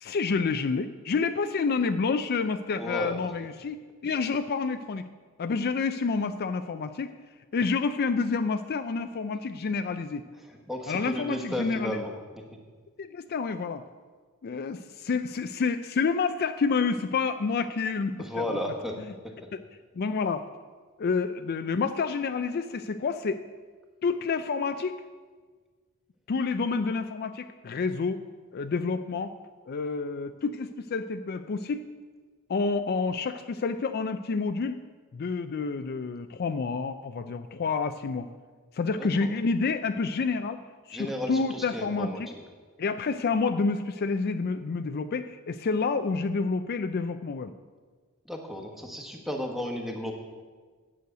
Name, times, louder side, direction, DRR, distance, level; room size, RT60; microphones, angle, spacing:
voice 1, 0.0-5.1 5.4-7.1 7.5-10.2 10.9-12.0 13.0-13.8 14.4-18.6 19.5-19.6 20.0-20.4 21.0-23.4 24.0-25.0 26.3-28.2 28.5-29.3 29.7-31.9 32.5-34.8 35.1-38.3 38.7-40.6 40.9-42.3 42.8-47.5, left 4 dB, 45° left, 9 dB, 0.4 m, -29 dB
voice 2, 2.7-3.2 10.4-12.1 18.2-19.0 19.2-19.3 39.0-39.3 40.9-42.2 48.2-50.1, left 1 dB, ahead, 1 dB, 1.2 m, -34 dB
9.4 x 6.4 x 8.0 m, 1.5 s
head